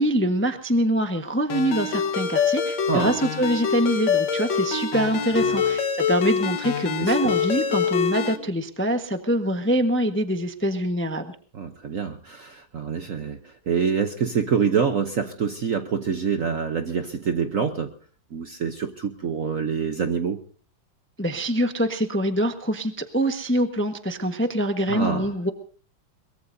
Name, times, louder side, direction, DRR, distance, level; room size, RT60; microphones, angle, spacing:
voice 1, 0.0-11.3 21.2-25.5, equal, 10° left, 6 dB, 0.8 m, -24 dB
Ringtone, 1.5-8.4, left 6 dB, 65° left, 2.1 m, -25 dB
voice 2, 7.0-7.3 11.5-17.9 18.3-20.4 24.9-25.3, right 6 dB, 50° right, 7 dB, 1.0 m, -26 dB
22.5 x 22.0 x 2.7 m, 0.40 s
omnidirectional pair, 2.3 m